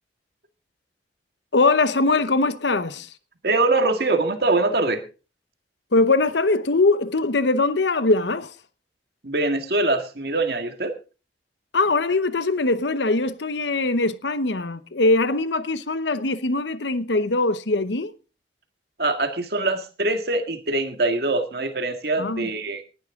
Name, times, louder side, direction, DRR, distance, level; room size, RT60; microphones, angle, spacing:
voice 1, 1.5-3.1 5.9-8.5 11.7-18.1 22.2-22.5, left 3 dB, 85° left, 1.0 m, -21 dB
voice 2, 3.4-5.0 9.2-10.9 19.0-22.8, right 2 dB, 60° right, 1.9 m, -23 dB
19.0 x 11.0 x 3.7 m
head